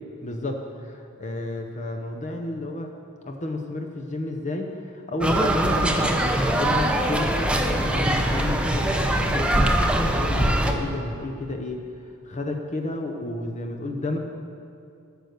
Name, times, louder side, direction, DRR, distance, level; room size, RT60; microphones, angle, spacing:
voice 1, 0.2-2.9 3.2-14.2, left 2 dB, 35° left, 3 dB, 0.7 m, -32 dB
sound 1, 5.2-10.7, right 1 dB, 5° right, 0.7 m, -22 dB
11.5 x 6.6 x 6.6 m, 2.4 s
head